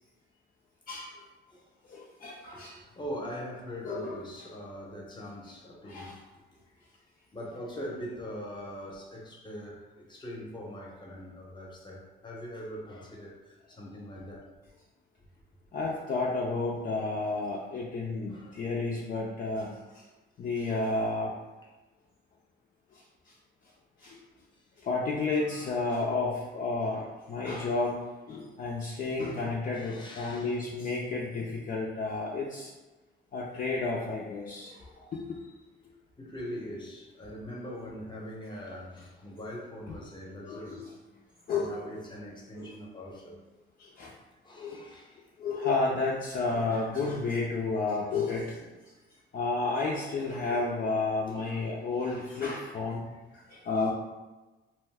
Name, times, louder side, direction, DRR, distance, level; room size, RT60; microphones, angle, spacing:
voice 1, 1.9-2.8 3.8-4.2 5.8-6.2 15.7-20.0 20.4-21.3 24.0-24.2 24.8-32.7 33.3-34.7 35.0-35.4 39.9-40.0 40.5-40.9 41.5-41.8 42.6-42.7 43.8-44.1 44.6-44.9 45.4-48.6 49.3-53.9, left 3 dB, 45° left, -3 dB, 0.5 m, -31 dB
voice 2, 2.5-6.2 7.3-14.5 18.3-18.6 24.0-24.2 25.5-25.8 29.7-30.6 34.6-35.0 36.2-41.2 41.5-43.6 44.4-45.3 49.1-49.2 51.3-51.5, equal, 25° left, -2 dB, 0.8 m, -42 dB
2.7 x 2.2 x 3.4 m, 1.1 s
cardioid pair, 90°, 20 cm